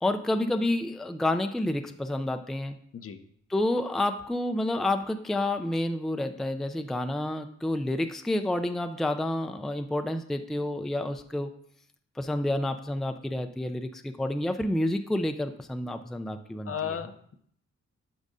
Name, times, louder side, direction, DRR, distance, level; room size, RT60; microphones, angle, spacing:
voice 1, 0.0-2.8 3.5-11.5 12.2-17.0, left 1 dB, ahead, 8 dB, 0.4 m, -29 dB
voice 2, 16.6-17.4, left 8 dB, 50° left, 9 dB, 0.7 m, -34 dB
8.2 x 5.2 x 2.6 m, 0.65 s
cardioid pair, 55°, 29 cm